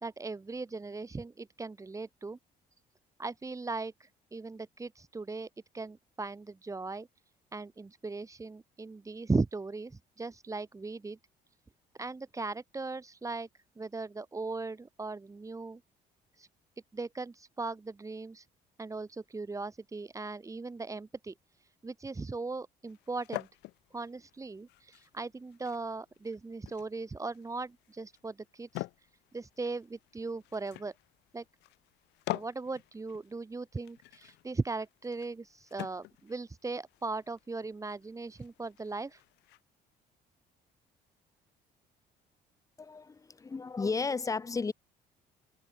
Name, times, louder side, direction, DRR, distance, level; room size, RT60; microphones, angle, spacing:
voice 1, 0.0-2.4 3.2-5.5 5.7-7.1 7.5-11.2 12.0-13.5 13.8-15.8 16.3-16.5 16.9-18.5 18.8-21.3 21.6-23.5 23.9-29.1 29.3-30.9 31.3-31.4 32.3-39.2, right 3 dB, 20° right, 2.2 m, -38 dB
sound 1, 22.9-39.6, left 20 dB, 85° left, 0.8 m, -47 dB
voice 2, 42.8-44.7, left 4 dB, 20° left, 0.8 m, -33 dB
cardioid pair, 110°, 17 cm